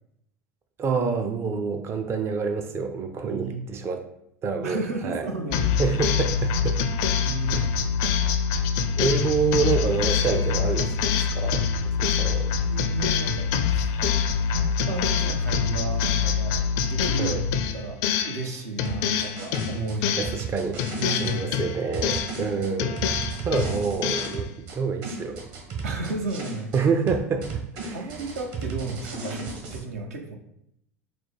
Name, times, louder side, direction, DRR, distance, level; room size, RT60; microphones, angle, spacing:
voice 1, 0.8-4.0 4.4-5.3 5.8-6.8 7.5-7.7 9.0-10.9 11.3-11.6 12.0-12.5 17.2-17.4 20.2-20.9 21.2-23.0 23.4-25.4 26.7-28.0, right 5 dB, 30° right, 6 dB, 0.4 m, -27 dB
voice 2, 3.3-3.6 4.6-5.8 7.2-7.6 12.7-13.9 14.6-17.4 17.7-20.3 21.0-21.6 25.8-26.7 27.9-30.4, right 3 dB, 75° right, 3 dB, 0.6 m, -33 dB
sound 1, 5.5-18.5 18.8-20.5 20.8-22.5 22.8-24.4, left 6 dB, 60° left, 0.4 m, -25 dB
sound 2, 18.8-21.3 21.9-24.8 25.0-26.8 27.1-29.8, right 4 dB, 50° right, 1.2 m, -34 dB
4.3 x 2.2 x 4.5 m, 0.76 s
hypercardioid pair, 85°, 8 cm